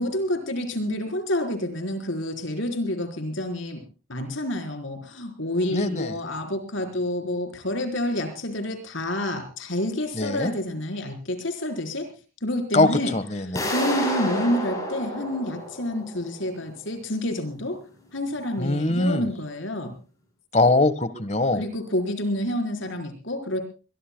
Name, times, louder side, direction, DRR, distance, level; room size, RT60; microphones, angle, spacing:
voice 1, 0.0-3.8 4.1-12.1 12.4-13.1 13.7-17.8 18.1-19.9 21.6-23.6, left 1 dB, 65° left, 5 dB, 4.3 m, -28 dB
voice 2, 5.7-6.1 10.1-10.5 12.7-13.7 18.6-19.3 20.5-21.6, left 2 dB, 35° left, 13 dB, 1.4 m, -22 dB
sound 1, 13.6-16.4, left 1 dB, 15° left, 6.7 m, -29 dB
23.0 x 22.5 x 2.3 m, 0.34 s
head